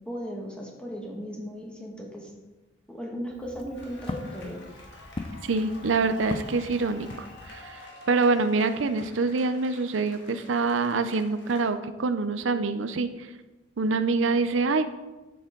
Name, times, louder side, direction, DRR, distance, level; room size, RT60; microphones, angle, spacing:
voice 1, 0.1-2.3 2.9-4.6, equal, 5° left, -1 dB, 1.8 m, -36 dB
Walk footsteps, 3.2-7.8, left 2 dB, 30° left, 0.4 m, -40 dB
sound 1, 3.7-11.7, left 2 dB, 65° left, 2.3 m, -48 dB
voice 2, 5.5-7.8 8.1-13.3 13.8-14.8, right 3 dB, 90° right, 10 dB, 0.6 m, -25 dB
11.0 x 7.8 x 3.8 m, 1.1 s
head